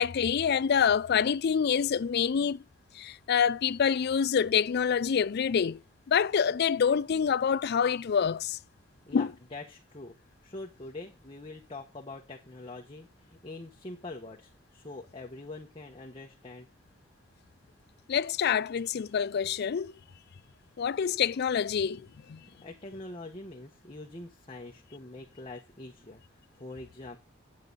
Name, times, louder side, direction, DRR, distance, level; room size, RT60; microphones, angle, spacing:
voice 1, 0.0-2.6 3.0-5.8 6.1-8.6 9.1-9.3 18.1-19.9 20.8-22.4, left 7 dB, 55° left, 0.4 m, -26 dB
voice 2, 9.1-10.1 10.4-16.7 22.6-26.2 26.6-27.2, left 2 dB, 30° left, 1.1 m, -44 dB
9.0 x 7.8 x 4.0 m
head